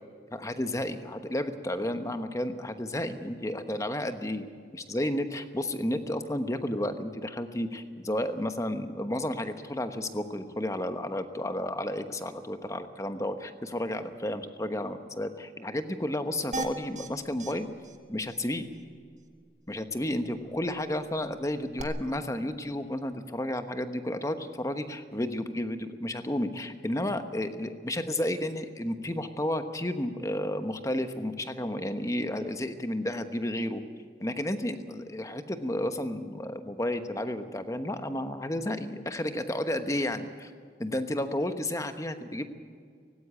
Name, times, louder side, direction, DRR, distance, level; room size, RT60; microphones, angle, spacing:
voice 1, 0.3-4.5 4.7-17.7 18.1-18.7 19.7-33.8 34.2-40.5 40.8-42.5, left 1 dB, 20° left, 8 dB, 1.1 m, -32 dB
sound 1, 16.5-17.1 17.4-17.5 17.8-18.0 18.3-18.4 21.8-21.9, right 2 dB, 45° right, 1.5 m, -35 dB
18.0 x 16.5 x 8.9 m, 2.1 s
head